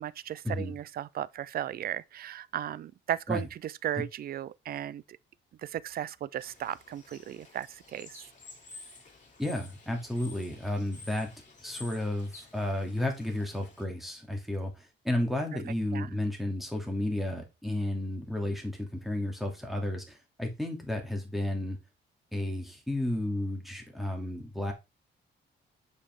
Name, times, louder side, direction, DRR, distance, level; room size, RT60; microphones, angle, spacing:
voice 1, 0.0-5.2 5.6-8.2 15.9-16.1, right 11 dB, 50° right, 0.4 m, -36 dB
Bird / Water, 6.4-13.8, left 3 dB, 40° left, 2.9 m, -51 dB
voice 2, 9.4-11.3 11.6-21.8 22.3-24.7, left 1 dB, ahead, 2.5 m, -32 dB
6.7 x 5.4 x 3.6 m
cardioid pair, 90°, 20 cm